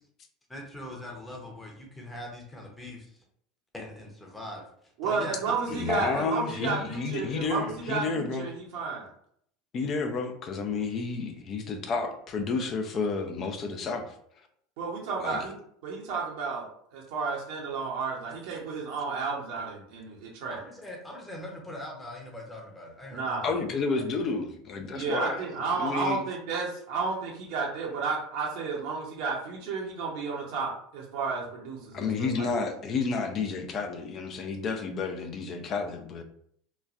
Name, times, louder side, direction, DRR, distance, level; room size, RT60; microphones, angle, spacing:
voice 1, 0.5-3.2 3.7-4.6 5.0-5.5 6.1-6.2 20.5-23.4 23.9-24.0, left 1 dB, 10° left, -1 dB, 0.9 m, -41 dB
voice 2, 5.0-9.1 14.8-20.6 23.1-23.5 24.9-32.7, right 4 dB, 70° right, -2 dB, 0.8 m, -32 dB
voice 3, 5.7-8.5 9.7-14.1 15.2-15.4 23.4-25.4 25.7-26.2 31.9-36.2, left 4 dB, 45° left, 5 dB, 0.5 m, -31 dB
3.0 x 2.3 x 2.5 m, 0.65 s
hypercardioid pair, 80°, 0 cm